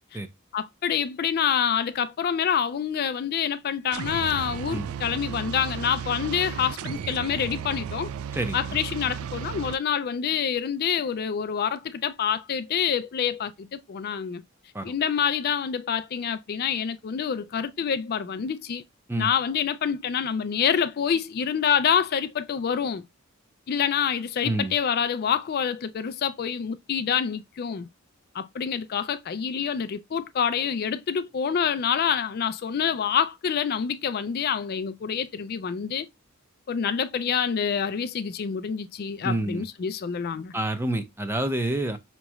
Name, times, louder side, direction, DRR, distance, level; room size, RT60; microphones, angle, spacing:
voice 1, 0.5-8.1 8.5-14.4 14.8-18.8 19.1-23.0 23.7-27.9 28.3-36.1 36.7-40.5, left 7 dB, 45° left, 0.3 m, -27 dB
sound 1, 3.9-9.8, right 8 dB, 80° right, 0.3 m, -34 dB
voice 2, 39.2-39.6 40.5-42.0, right 1 dB, 10° right, 0.6 m, -27 dB
5.1 x 3.0 x 2.2 m
head